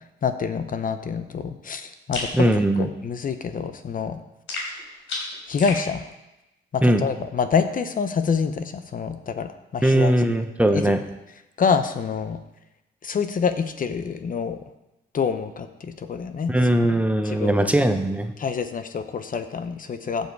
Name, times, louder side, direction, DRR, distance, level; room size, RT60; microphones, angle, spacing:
voice 1, 0.2-2.5 2.8-4.2 5.5-6.0 6.7-10.1 10.7-10.8 11.6-12.4 13.0-14.6 15.1-16.5 17.2-17.7 18.4-20.3, left 6 dB, 45° left, 9 dB, 0.8 m, -26 dB
sound 1, 2.1-2.4 4.5-5.8, left 3 dB, 85° left, 3.5 m, -31 dB
voice 2, 2.3-2.9 6.8-7.0 9.8-11.0 16.5-18.3, right 1 dB, 5° right, 7 dB, 0.8 m, -20 dB
15.0 x 5.4 x 4.7 m, 0.95 s
cardioid pair, 90°, 20 cm